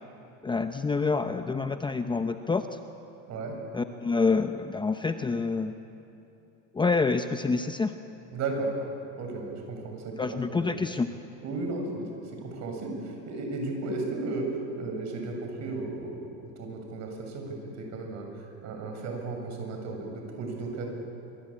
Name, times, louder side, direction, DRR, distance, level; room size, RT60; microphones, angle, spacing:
voice 1, 0.4-2.8 3.7-5.7 6.7-7.9 10.2-11.1, left 4 dB, 15° left, 8 dB, 0.8 m, -27 dB
voice 2, 8.3-8.7 9.1-10.8 11.4-12.1 12.4-20.9, right 3 dB, 50° right, 2 dB, 7.3 m, -34 dB
25.5 x 25.0 x 8.8 m, 2.9 s
supercardioid pair, 130°, 36 cm